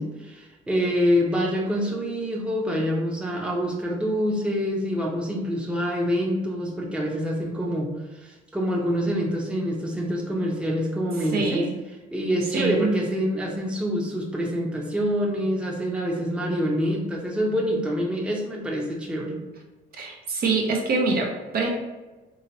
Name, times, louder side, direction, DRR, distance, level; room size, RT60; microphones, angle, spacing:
voice 1, 0.0-11.7 12.1-19.4, equal, 5° right, -2 dB, 0.8 m, -26 dB
voice 2, 11.3-11.7 12.5-13.0 19.9-21.7, right 3 dB, 50° right, 1 dB, 0.8 m, -25 dB
2.9 x 2.9 x 4.0 m, 1.2 s
supercardioid pair, 85°, 20 cm